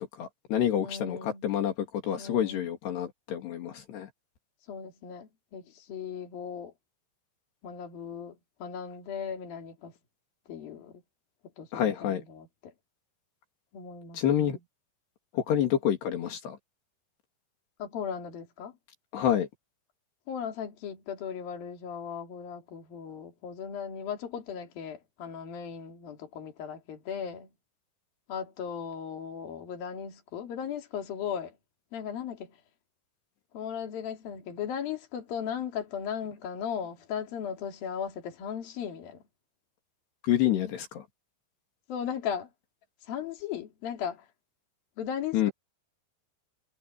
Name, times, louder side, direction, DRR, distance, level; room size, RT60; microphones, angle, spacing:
voice 1, 0.2-1.7 2.0-4.1 11.7-12.2 14.1-14.6 15.3-16.6 19.1-19.5 40.2-41.0 45.3-45.5, left 10 dB, 80° left, 4.7 m, -28 dB
voice 2, 0.8-1.5 2.2-2.7 4.7-6.7 7.6-9.9 10.5-11.0 11.6-12.7 13.7-14.6 17.8-18.7 20.3-27.5 28.3-31.5 31.9-32.5 33.5-39.2 41.9-42.5 43.1-44.3 45.0-45.5, left 7 dB, 60° left, 4.6 m, -37 dB
omnidirectional pair, 4.7 m